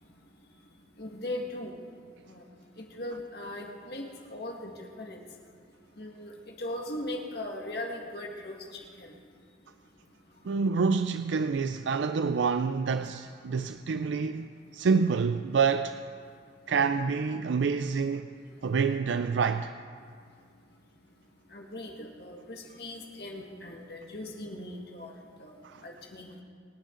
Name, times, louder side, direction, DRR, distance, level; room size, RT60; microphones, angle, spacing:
voice 1, 1.0-1.7 2.3-2.4 3.0-5.2 6.0-6.3 6.6-9.1 21.5-25.1 25.4-25.5 25.8-26.4, left 1 dB, 55° left, 1.8 m, -39 dB
voice 2, 10.4-16.0 16.7-18.3 18.6-19.7 25.6-25.8, right 5 dB, 80° right, 0.4 m, -27 dB
28.0 x 10.5 x 3.9 m
head